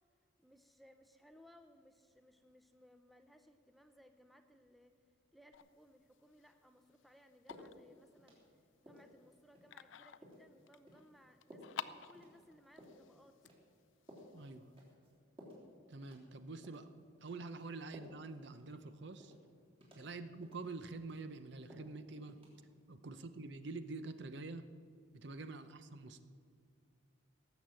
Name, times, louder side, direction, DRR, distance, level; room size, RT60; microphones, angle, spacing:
voice 1, 0.4-4.9 5.3-8.4 8.8-13.5 20.1-20.3 23.1-23.3, equal, ahead, 7 dB, 0.6 m, -64 dB
sound 1, 5.5-14.9, left 8 dB, 70° left, 0.5 m, -54 dB
sound 2, 7.5-7.7 8.2-8.6 8.9-9.1 9.6-9.7 10.2-10.5 10.9-11.0 11.5-11.7 12.1-12.3 12.8-13.0 13.4-13.8 14.1-14.3 14.8-15.1 15.4-15.6 16.0-16.4 16.6-16.9 17.3-17.4 17.9-18.3 18.6-18.7 19.2-19.4 19.8-20.1 20.4-20.6 21.0-21.4 21.7-21.9 22.3-22.5, equal, 30° right, 3.3 m, -57 dB
voice 2, 14.3-14.7 15.9-16.9 17.2-19.3 20.0-22.4 22.9-24.6 25.1-26.2, right 3 dB, 60° right, 10 dB, 0.8 m, -47 dB
18.0 x 7.2 x 7.6 m, 2.2 s
head